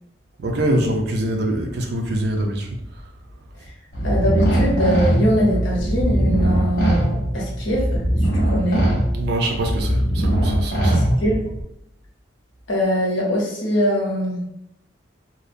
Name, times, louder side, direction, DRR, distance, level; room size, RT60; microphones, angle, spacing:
voice 1, 0.4-2.7 9.2-11.2, right 1 dB, 55° right, 2 dB, 0.4 m, -24 dB
sound 1, 3.9-11.6, right 1 dB, 50° left, 0.8 m, -21 dB
voice 2, 4.0-8.0 8.5-8.9 10.8-11.4 12.7-14.4, equal, 75° left, -3 dB, 0.8 m, -22 dB
2.7 x 2.0 x 2.5 m, 0.79 s
head